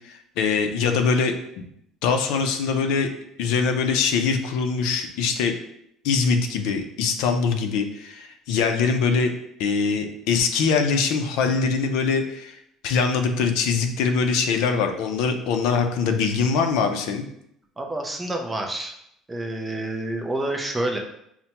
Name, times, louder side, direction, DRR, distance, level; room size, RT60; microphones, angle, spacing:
voice 1, 0.1-1.3 2.0-3.1 3.4-5.5 6.0-9.3 9.6-12.6 12.8-17.2, left 5 dB, 70° left, 5 dB, 0.4 m, -23 dB
voice 2, 17.8-18.9 19.3-21.0, right 1 dB, 10° right, 2 dB, 0.4 m, -28 dB
5.5 x 2.1 x 2.8 m, 0.75 s
cardioid pair, 175°, 0 cm